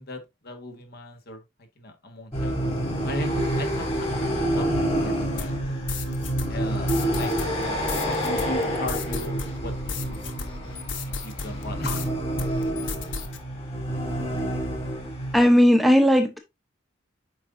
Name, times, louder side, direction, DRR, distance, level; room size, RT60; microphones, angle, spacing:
voice 1, 0.0-1.4 1.8-2.6 3.0-4.1 4.3-4.7 5.0-5.6 6.5-7.3 8.0-10.2 11.2-12.1, left 1 dB, 60° left, 1.6 m, -37 dB
sound 1, 2.3-15.4, right 1 dB, 35° left, 3.2 m, -28 dB
sound 2, 5.4-12.1 12.4-13.4, left 4 dB, 80° left, 1.0 m, -35 dB
voice 2, 15.3-16.4, equal, ahead, 0.7 m, -17 dB
7.9 x 5.2 x 2.6 m
head